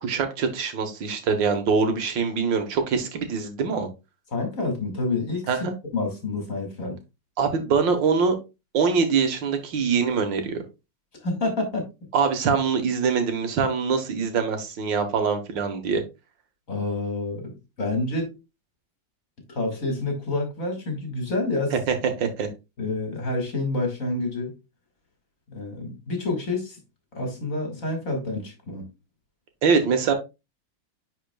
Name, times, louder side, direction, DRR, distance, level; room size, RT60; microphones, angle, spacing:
voice 1, 0.0-3.9 5.5-5.7 7.4-8.4 8.7-10.6 12.1-16.0 21.7-22.5 29.6-30.1, right 5 dB, 80° right, 1.8 m, -23 dB
voice 2, 4.3-7.0 11.2-11.9 16.7-18.4 19.5-21.7 22.8-24.5 25.5-26.8 27.1-28.9, left 2 dB, 45° left, 2.3 m, -28 dB
10.0 x 4.3 x 2.2 m
omnidirectional pair, 2.0 m